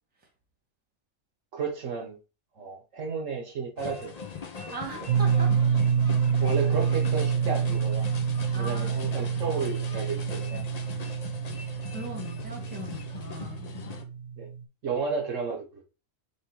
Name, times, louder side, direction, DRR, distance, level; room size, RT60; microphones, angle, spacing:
voice 1, 1.5-2.2 2.6-4.2 4.7-4.8 6.4-8.1 8.5-10.6 14.4-14.5 14.8-15.8, right 5 dB, 65° right, 1.2 m, -32 dB
sound 1, 3.8-14.0, left 5 dB, 50° left, 0.4 m, -41 dB
voice 2, 4.7-5.5 6.2-6.3 8.5-8.9 11.9-13.7, right 2 dB, 5° right, 1.1 m, -40 dB
sound 2, 5.1-14.6, right 7 dB, 85° right, 1.2 m, -27 dB
3.5 x 3.1 x 4.5 m
omnidirectional pair, 1.5 m